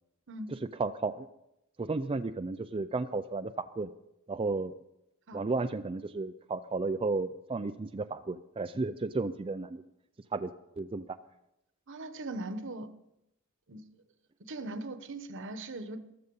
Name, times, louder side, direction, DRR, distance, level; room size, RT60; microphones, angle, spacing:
voice 1, 0.5-1.3 1.8-3.9 4.3-4.7 5.3-9.8 10.3-11.2, right 3 dB, 25° right, 8 dB, 0.4 m, -33 dB
voice 2, 11.9-12.9 13.7-13.8 14.5-16.0, right 2 dB, 60° right, 11 dB, 1.1 m, -39 dB
14.5 x 13.0 x 5.5 m, 0.84 s
head